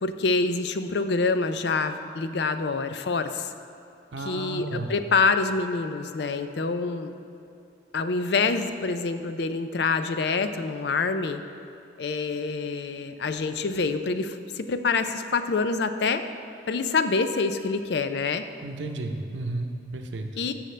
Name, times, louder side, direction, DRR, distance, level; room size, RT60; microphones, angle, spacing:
voice 1, 0.0-3.5 4.2-7.1 7.9-11.4 12.0-16.2 16.7-18.4 20.4-20.5, left 4 dB, 60° left, 9 dB, 0.4 m, -26 dB
voice 2, 4.1-4.9 18.6-20.3, right 2 dB, 75° right, 5 dB, 0.8 m, -33 dB
14.5 x 6.4 x 3.3 m, 2.7 s
head